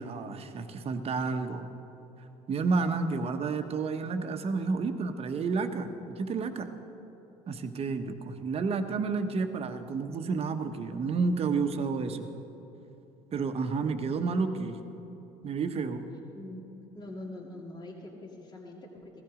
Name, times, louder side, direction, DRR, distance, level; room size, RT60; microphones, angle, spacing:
voice 1, 0.0-1.7 2.5-6.7 7.5-12.3 13.3-14.8 15.4-16.1, right 4 dB, 40° right, 7 dB, 1.2 m, -30 dB
voice 2, 16.9-19.2, left 2 dB, 30° left, -2 dB, 2.3 m, -43 dB
16.0 x 13.5 x 5.1 m, 3.0 s
supercardioid pair, 90°, 15 cm